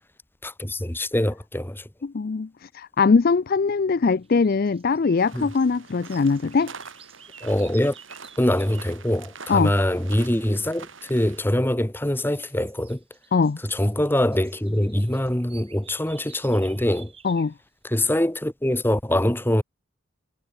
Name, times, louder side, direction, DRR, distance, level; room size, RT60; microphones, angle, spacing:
voice 1, 0.4-1.8 5.3-5.5 7.4-7.9 8.4-13.0 13.7-17.1 17.8-19.6, left 1 dB, 10° left, 1.3 m, -23 dB
voice 2, 2.0-6.7 9.5-9.7 13.3-13.6 17.2-17.5, left 4 dB, 50° left, 0.4 m, -21 dB
sound 1, 4.2-9.0 11.2-11.6 12.0-17.6, right 7 dB, 30° right, 6.5 m, -51 dB
sound 2, 5.2-11.4, right 5 dB, 75° right, 7.5 m, -45 dB
head